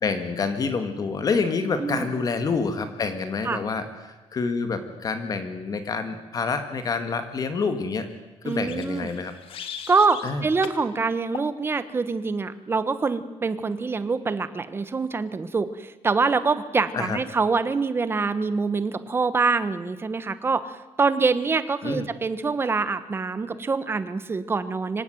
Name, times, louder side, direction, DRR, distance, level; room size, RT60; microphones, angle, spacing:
voice 1, 0.0-8.1 8.5-9.3 10.2-10.5 16.9-17.2 21.8-22.1, left 4 dB, 35° left, 9 dB, 2.0 m, -27 dB
sound 1, 8.4-10.3 10.6-10.8 11.3-11.5, left 7 dB, 55° left, 2.1 m, -38 dB
voice 2, 8.4-9.1 9.9-25.0, right 4 dB, 20° right, 13 dB, 1.3 m, -25 dB
25.5 x 17.0 x 9.4 m, 1.2 s
cardioid pair, 175°, 11 cm